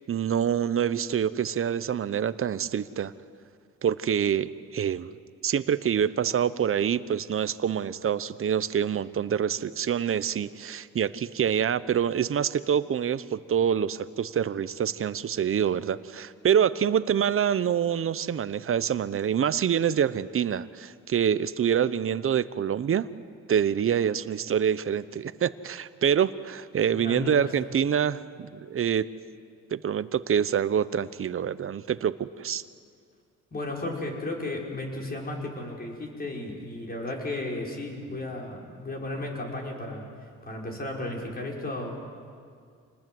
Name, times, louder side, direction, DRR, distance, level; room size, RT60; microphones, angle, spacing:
voice 1, 0.1-3.1 3.8-5.2 5.4-23.1 23.5-29.1 29.7-32.6, right 8 dB, 45° right, 15 dB, 0.9 m, -26 dB
voice 2, 26.9-27.5 33.5-40.1 40.4-42.0, left 2 dB, 30° left, -1 dB, 5.7 m, -34 dB
28.5 x 20.0 x 7.8 m, 2.2 s
cardioid pair, 90°, 30 cm